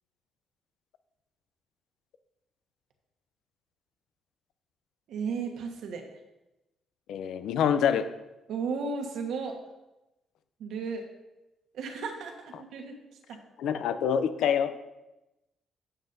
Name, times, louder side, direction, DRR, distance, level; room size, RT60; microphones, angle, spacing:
voice 1, 5.1-6.0 8.5-9.6 10.6-11.0 11.7-12.9 13.3-13.4, right 5 dB, 80° right, 3 dB, 1.3 m, -34 dB
voice 2, 7.1-8.1 13.6-14.7, left 8 dB, 80° left, 11 dB, 0.5 m, -26 dB
11.0 x 7.2 x 2.7 m, 0.98 s
cardioid pair, 90°, 0 cm